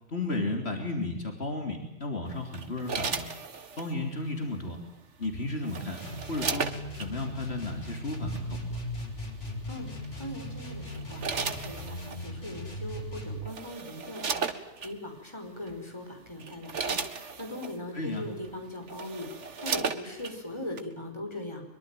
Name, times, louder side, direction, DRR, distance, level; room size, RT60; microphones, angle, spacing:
voice 1, 0.1-3.3 3.8-4.8 5.2-6.0 6.3-6.7 7.0-8.8 17.9-18.3, left 2 dB, 60° left, 3 dB, 3.7 m, -33 dB
sound 1, 2.5-3.9 5.2-7.1 8.1-8.4 10.0-10.3 10.9-12.2 13.1-13.2 13.5-14.9 15.7-15.8 16.3-17.8 18.4-18.5 18.8-20.4 20.8-20.9, right 5 dB, 80° right, 1.9 m, -35 dB
sound 2, 6.0-13.5, equal, 80° left, 6.0 m, -38 dB
voice 2, 10.2-21.6, left 1 dB, 25° left, 3 dB, 5.4 m, -40 dB
23.5 x 23.5 x 9.3 m, 0.82 s
omnidirectional pair, 1.2 m